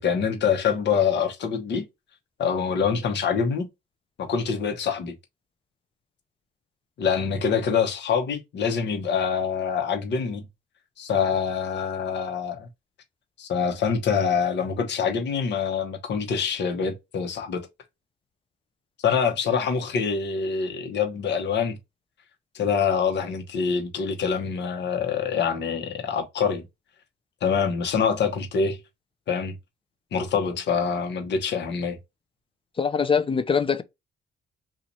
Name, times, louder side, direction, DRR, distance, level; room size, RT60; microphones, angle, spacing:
voice 1, 0.0-1.9 2.4-3.7 4.2-5.1 7.0-10.4 11.0-12.7 13.4-17.7 19.0-21.8 22.5-26.6 27.4-28.8 29.3-29.5 30.1-32.0, left 6 dB, 60° left, 0.9 m, -25 dB
voice 2, 32.8-33.8, left 6 dB, 25° left, 0.4 m, -23 dB
3.0 x 2.4 x 3.9 m
cardioid pair, 90°, 20 cm